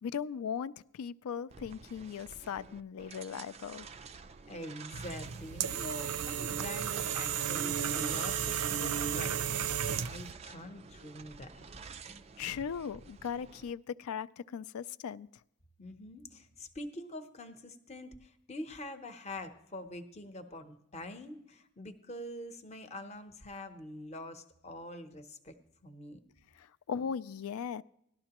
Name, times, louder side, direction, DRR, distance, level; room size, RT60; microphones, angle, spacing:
voice 1, 0.0-3.9 12.4-15.3 26.6-27.8, left 7 dB, 75° left, 17 dB, 0.3 m, -38 dB
sound 1, 1.5-13.7, right 5 dB, 30° right, 0.3 m, -50 dB
voice 2, 4.5-11.6 15.8-25.5 25.8-26.2, left 1 dB, 30° left, 8 dB, 0.7 m, -45 dB
sound 2, 4.9-10.3, right 8 dB, 90° right, 0.5 m, -33 dB
17.5 x 12.0 x 2.9 m, 0.77 s
head